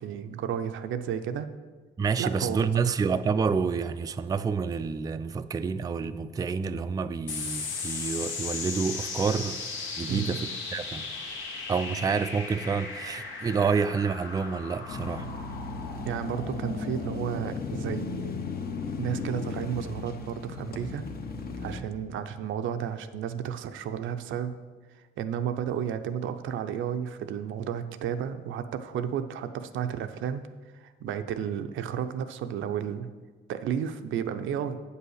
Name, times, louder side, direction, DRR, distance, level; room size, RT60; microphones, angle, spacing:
voice 1, 0.0-1.5 2.2-2.9 10.1-10.3 16.1-18.4 19.0-21.0 21.6-24.6 24.9-30.5 30.7-33.1 33.5-34.8, right 8 dB, 75° right, 9 dB, 0.6 m, -32 dB
voice 2, 2.0-9.6 10.0-10.4 10.7-11.1 11.7-15.3, right 5 dB, 20° right, 11 dB, 0.3 m, -28 dB
sound 1, 7.3-22.1, left 4 dB, 80° left, 1.4 m, -38 dB
sound 2, 14.9-21.8, left 4 dB, 50° left, 0.9 m, -36 dB
7.8 x 5.5 x 6.4 m, 1.4 s
cardioid pair, 90°, 20 cm